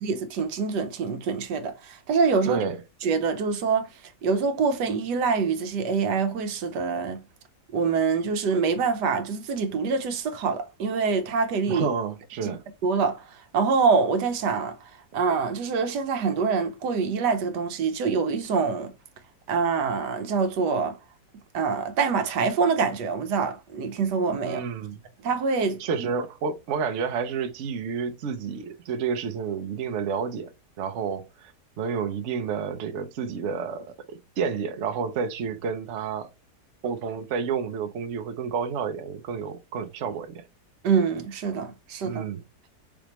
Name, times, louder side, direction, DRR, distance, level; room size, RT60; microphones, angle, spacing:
voice 1, 0.0-2.6 3.0-3.9 4.2-7.2 7.7-11.9 12.4-12.6 12.8-13.2 13.5-14.8 15.1-18.9 19.5-21.0 21.5-24.6 25.2-25.8 40.8-42.2, right 5 dB, 80° right, 1.4 m, -25 dB
voice 2, 2.5-2.8 11.7-12.6 24.4-25.0 25.8-36.3 36.8-40.4 42.0-42.4, right 6 dB, 60° right, 0.8 m, -30 dB
4.9 x 3.5 x 3.0 m
omnidirectional pair, 1.8 m